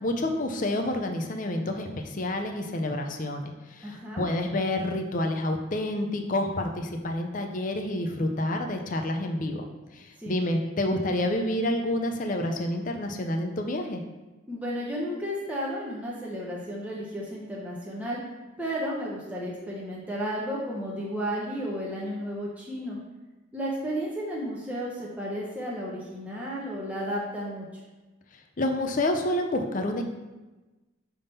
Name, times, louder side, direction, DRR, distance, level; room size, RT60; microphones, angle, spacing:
voice 1, 0.0-9.6 9.9-14.0 28.6-30.0, left 1 dB, 40° left, 4 dB, 0.5 m, -28 dB
voice 2, 3.8-4.3 10.2-10.3 14.5-18.2 18.6-23.0 23.5-27.8, equal, 5° right, -5 dB, 0.8 m, -33 dB
5.5 x 3.6 x 5.4 m, 1.2 s
head